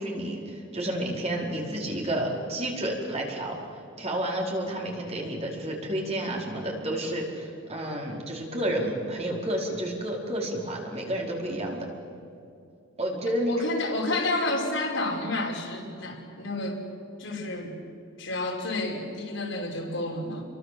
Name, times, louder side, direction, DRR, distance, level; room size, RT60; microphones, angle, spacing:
voice 1, 0.0-3.5 4.0-11.9 13.0-13.7, right 1 dB, 30° right, -1 dB, 4.9 m, -30 dB
voice 2, 13.5-16.8 17.2-17.7 18.2-20.5, left 2 dB, 65° left, 0 dB, 5.6 m, -30 dB
29.5 x 23.5 x 7.9 m, 2.5 s
head